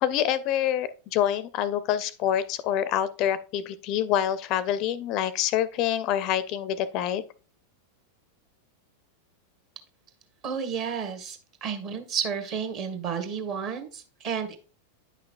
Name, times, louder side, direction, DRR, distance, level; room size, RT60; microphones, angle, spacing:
voice 1, 0.0-7.2, left 10 dB, 40° left, 16 dB, 0.4 m, -26 dB
voice 2, 10.4-14.6, right 6 dB, 40° right, 7 dB, 1.3 m, -32 dB
9.4 x 5.7 x 2.4 m, 0.35 s
figure-of-eight pair, 90°, 0 cm